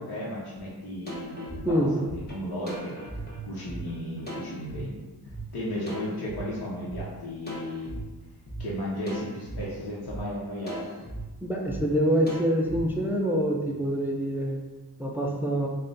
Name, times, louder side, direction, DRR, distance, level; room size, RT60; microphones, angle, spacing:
voice 1, 0.0-2.9 3.4-8.0 8.6-10.9, left 1 dB, 70° left, -8 dB, 0.9 m, -35 dB
sound 1, 0.6-0.7 1.1-4.8 5.3-5.4 5.9-7.0 7.5-8.0 8.5-8.6 9.1-9.6 10.1-10.2 10.7-11.2 11.7-11.8 12.3-12.8, equal, 25° left, 0.9 m, -39 dB
voice 2, 11.4-14.6 15.0-15.7, equal, 5° right, -1 dB, 0.4 m, -25 dB
3.7 x 2.2 x 3.8 m, 1.2 s
wide cardioid pair, 130°, 38 cm